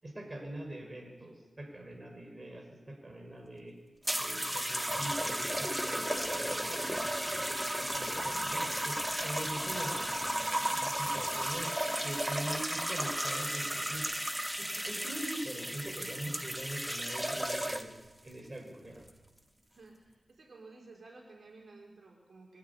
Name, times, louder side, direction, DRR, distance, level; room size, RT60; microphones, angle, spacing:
voice 1, 0.0-3.7 4.1-6.6 7.6-10.1 10.4-14.0 14.6-17.9 18.2-19.0, right 1 dB, 30° right, 2 dB, 5.8 m, -43 dB
sound 1, 4.0-18.1 18.9-19.3, right 1 dB, 10° right, 1.3 m, -34 dB
voice 2, 19.7-22.6, right 3 dB, 75° right, -1 dB, 4.9 m, -54 dB
23.0 x 13.0 x 9.9 m, 1.2 s
wide cardioid pair, 85°, 0 cm